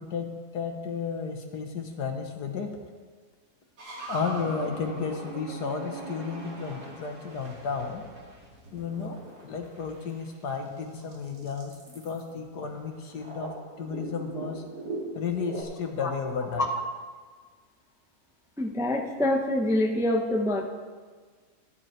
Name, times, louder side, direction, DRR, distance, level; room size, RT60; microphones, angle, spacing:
voice 1, 0.0-2.8 4.1-8.0 8.7-14.6 15.1-16.7, left 5 dB, 80° left, 4 dB, 1.9 m, -33 dB
sound 1, 3.8-10.3 10.8-12.2 13.1-15.6, right 2 dB, 75° right, 2.7 m, -40 dB
voice 2, 18.6-20.7, left 1 dB, 5° right, 2 dB, 0.6 m, -25 dB
14.0 x 10.5 x 4.5 m, 1.5 s
omnidirectional pair, 1.7 m